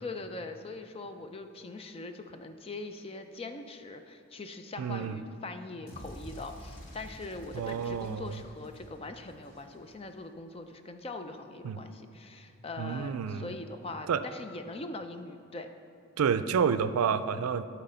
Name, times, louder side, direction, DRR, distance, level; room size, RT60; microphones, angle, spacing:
voice 1, 0.0-15.7, left 2 dB, 25° left, 7 dB, 0.4 m, -42 dB
voice 2, 4.8-5.2 7.5-8.3 11.6-11.8 12.8-13.5 14.1-14.2 16.2-17.6, right 7 dB, 85° right, 12 dB, 0.4 m, -29 dB
sound 1, 5.9-10.1, equal, 85° left, 2.1 m, -49 dB
11.5 x 4.1 x 5.5 m, 2.7 s
head